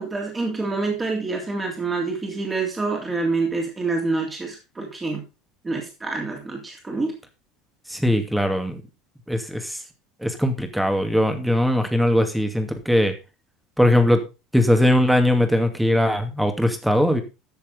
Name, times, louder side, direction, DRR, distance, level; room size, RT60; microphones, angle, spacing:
voice 1, 0.0-5.2 5.6-7.1, right 3 dB, 20° right, 0 dB, 3.3 m, -27 dB
voice 2, 7.9-8.8 9.3-9.8 10.2-13.1 13.8-14.2 14.5-17.2, left 1 dB, 5° right, 6 dB, 2.4 m, -20 dB
14.0 x 7.3 x 3.8 m, 0.28 s
figure-of-eight pair, 70°, 0 cm